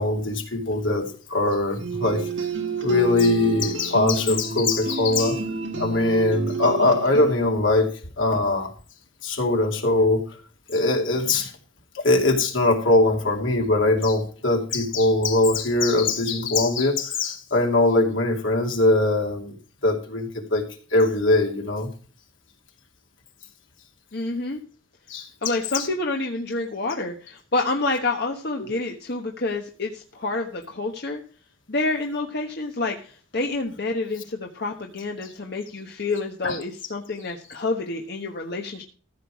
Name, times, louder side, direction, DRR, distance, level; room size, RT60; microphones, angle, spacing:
voice 1, 0.0-2.2 2.8-5.4 5.8-7.9 8.2-8.7 9.2-10.2 10.7-11.5 12.0-19.5 19.8-20.6 20.9-21.9 25.1-25.3 25.7-25.9 36.4-36.6, left 2 dB, 80° left, 2 dB, 2.7 m, -21 dB
sound 1, 1.8-7.4, right 4 dB, 65° right, 1.7 m, -30 dB
voice 2, 24.1-24.6 25.4-31.2 31.7-38.8, left 2 dB, 55° left, 2 dB, 1.3 m, -28 dB
14.5 x 6.7 x 4.8 m, 0.41 s
head